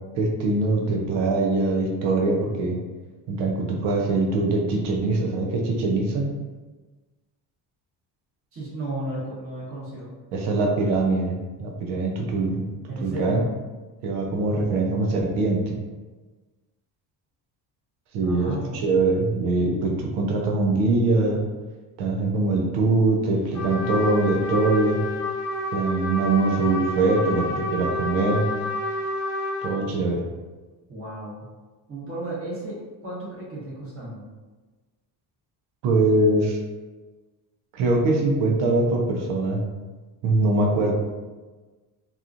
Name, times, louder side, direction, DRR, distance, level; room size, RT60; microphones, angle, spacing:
voice 1, 0.2-2.8 3.3-6.3 10.3-12.6 13.0-13.4 14.0-15.7 18.1-21.4 22.0-25.0 25.7-28.5 29.6-30.2 35.8-36.6 37.7-39.6 40.2-40.9, right 2 dB, 85° right, 1 dB, 0.7 m, -23 dB
voice 2, 8.5-10.1 12.9-13.5 18.2-18.8 30.9-31.4 31.9-34.2, right 1 dB, 35° right, -8 dB, 1.2 m, -34 dB
Trumpet, 23.5-29.8, left 2 dB, 55° left, 0.8 m, -29 dB
2.9 x 2.4 x 2.4 m, 1.2 s
cardioid pair, 160°, 40 cm